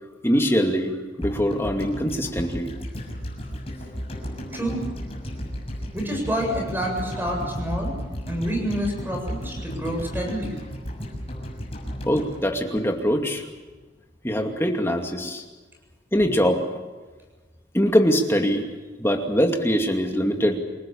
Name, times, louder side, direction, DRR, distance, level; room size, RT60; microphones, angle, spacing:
voice 1, 0.2-2.7 12.0-13.4 14.2-15.4 16.1-16.6 17.7-18.7 19.0-20.6, equal, 15° left, 3 dB, 2.5 m, -22 dB
sound 1, 1.2-13.4 13.7-13.8, equal, 30° left, 6.8 m, -34 dB
voice 2, 4.5-4.9 5.9-7.9 8.3-10.5, equal, 10° right, 1 dB, 7.9 m, -28 dB
28.5 x 18.5 x 7.2 m, 1.3 s
head